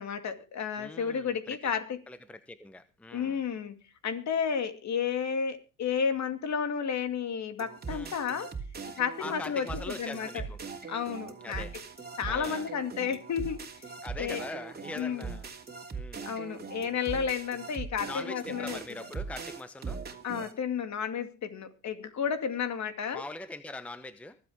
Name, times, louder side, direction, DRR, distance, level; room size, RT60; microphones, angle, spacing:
voice 1, 0.0-2.0 3.1-3.8 4.0-8.5 9.0-10.4 10.9-11.6 12.2-13.7 14.2-14.4 15.0-15.3 16.2-18.8 20.2-23.2, left 7 dB, 45° left, 2.3 m, -32 dB
voice 2, 0.8-1.7 2.1-3.4 7.9-8.1 9.2-10.6 11.4-11.8 12.3-12.7 14.0-15.5 15.9-16.4 18.0-20.0 23.1-24.4, left 2 dB, 5° left, 0.9 m, -42 dB
sound 1, 7.6-20.5, right 5 dB, 25° right, 2.8 m, -41 dB
24.0 x 8.3 x 3.6 m
supercardioid pair, 90°, 39 cm